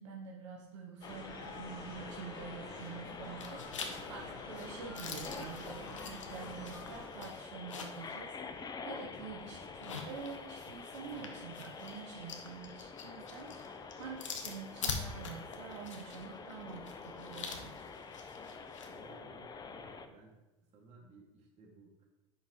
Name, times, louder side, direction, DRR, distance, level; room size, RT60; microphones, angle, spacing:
voice 1, 0.0-17.7, right 6 dB, 75° right, -1 dB, 0.9 m, -47 dB
sound 1, 1.0-7.1, left 2 dB, 65° left, 2.3 m, -48 dB
sound 2, 1.0-20.1, left 5 dB, 25° left, 0.6 m, -47 dB
sound 3, 2.7-3.1 3.4-8.1 8.5-8.6 9.6-18.9, left 5 dB, 90° left, 0.8 m, -45 dB
voice 2, 18.9-20.3 20.7-22.1, right 3 dB, 45° right, -1 dB, 2.1 m, -57 dB
7.5 x 5.7 x 3.1 m, 1.0 s
hypercardioid pair, 80°, 16 cm